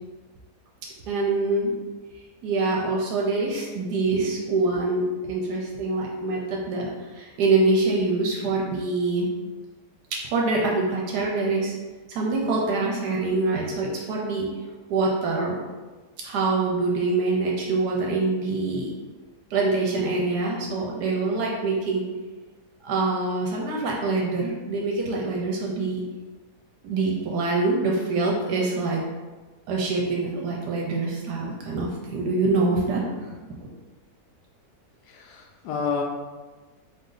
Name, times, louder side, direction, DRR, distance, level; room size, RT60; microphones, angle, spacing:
voice 1, 1.1-1.8 2.4-9.3 10.1-11.7 12.1-14.5 14.9-15.6 16.2-18.9 19.5-22.1 22.8-26.0 26.8-29.0 29.7-33.0 33.4-33.7, right 3 dB, 85° right, -2 dB, 1.2 m, -25 dB
voice 2, 35.1-36.0, left 5 dB, 80° left, 0 dB, 1.2 m, -29 dB
4.0 x 2.6 x 3.8 m, 1.3 s
omnidirectional pair, 1.7 m